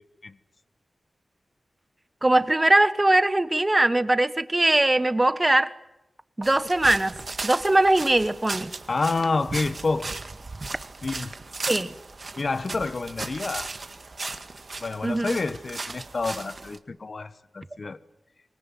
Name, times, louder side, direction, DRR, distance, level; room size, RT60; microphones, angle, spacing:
voice 1, 2.2-5.7 6.4-7.1 7.4-8.7 11.7-11.9 15.0-15.4, right 2 dB, 25° right, 13 dB, 1.5 m, -21 dB
sound 1, 6.4-16.8, right 3 dB, 55° right, 1.9 m, -36 dB
voice 2, 8.9-10.1 11.0-11.3 12.4-13.7 14.8-18.0, left 3 dB, 60° left, 13 dB, 1.3 m, -28 dB
25.0 x 20.0 x 9.5 m, 0.92 s
cardioid pair, 50°, 0 cm